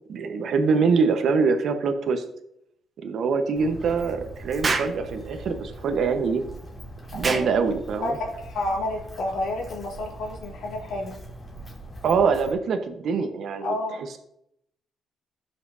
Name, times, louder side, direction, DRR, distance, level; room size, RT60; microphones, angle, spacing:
voice 1, 0.1-2.2 3.0-6.4 7.1-8.1 12.0-13.8, right 5 dB, 65° right, 6 dB, 1.1 m, -24 dB
Walk footsteps, 3.6-12.5, right 1 dB, 25° left, 3.0 m, -42 dB
Explosion, 4.6-5.0 7.2-7.5, right 4 dB, 35° right, 0.9 m, -25 dB
voice 2, 7.1-7.5 8.0-11.1 13.6-14.0, left 2 dB, 80° left, -2 dB, 2.8 m, -30 dB
16.0 x 5.9 x 2.7 m, 0.76 s
cardioid pair, 90°, 0 cm